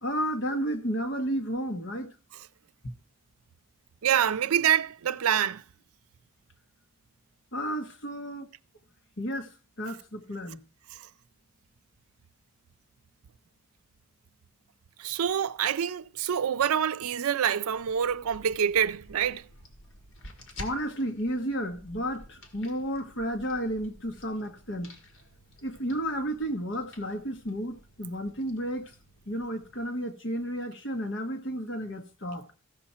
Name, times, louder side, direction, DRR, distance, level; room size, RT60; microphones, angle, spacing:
voice 1, 0.0-2.1 7.5-8.5 9.2-9.5 9.8-10.6 20.6-24.9 25.6-28.9 29.3-32.4, equal, 55° left, 1.3 m, -32 dB
voice 2, 4.0-5.6 15.0-19.4, right 9 dB, 90° right, 0.4 m, -26 dB
sound 1, 17.7-29.9, equal, 75° left, 1.9 m, -51 dB
15.0 x 5.7 x 4.3 m
head